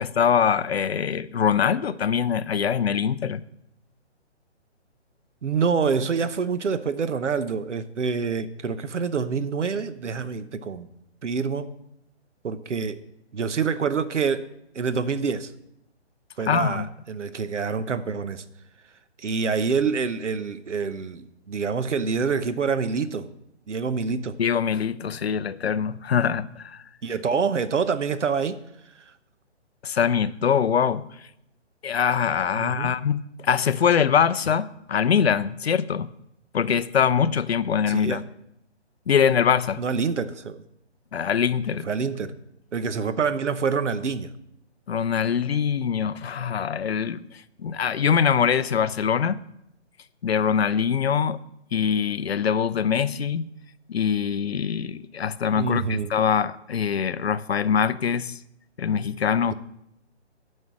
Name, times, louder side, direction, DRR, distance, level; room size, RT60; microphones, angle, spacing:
voice 1, 0.0-3.4 16.5-16.9 24.4-26.8 29.8-31.1 31.8-36.1 36.5-38.2 39.1-39.8 41.1-41.9 44.9-47.3 47.6-49.4 50.2-51.4 51.7-53.5 53.9-58.4 58.8-59.5, left 7 dB, 60° left, 16 dB, 0.6 m, -23 dB
voice 2, 5.4-10.9 11.2-11.7 12.4-13.0 13.3-14.5 14.7-15.5 16.4-18.4 19.2-23.3 23.7-24.4 27.0-28.6 32.6-32.9 37.9-38.2 39.8-40.6 41.9-42.3 42.7-44.3 55.5-56.1, right 5 dB, 90° right, 13 dB, 1.0 m, -26 dB
9.5 x 5.5 x 7.5 m, 0.80 s
hypercardioid pair, 170°, 35 cm